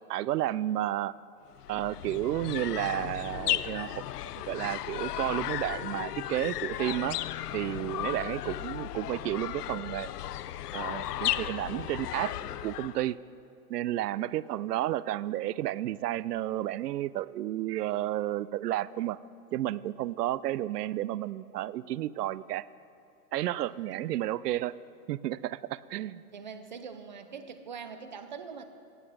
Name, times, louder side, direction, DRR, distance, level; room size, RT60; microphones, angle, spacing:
voice 1, 0.1-1.1 1.7-4.0 4.5-7.2 7.5-10.1 10.7-12.3 12.6-13.2 13.7-19.2 19.5-22.7 23.3-24.7 25.1-26.2, right 14 dB, 90° right, 19 dB, 0.5 m, -32 dB
sound 1, 1.6-13.1, left 13 dB, 85° left, 0.6 m, -35 dB
voice 2, 26.3-28.6, right 6 dB, 30° right, 9 dB, 0.4 m, -43 dB
17.0 x 8.1 x 4.7 m, 2.6 s
hypercardioid pair, 170°, 46 cm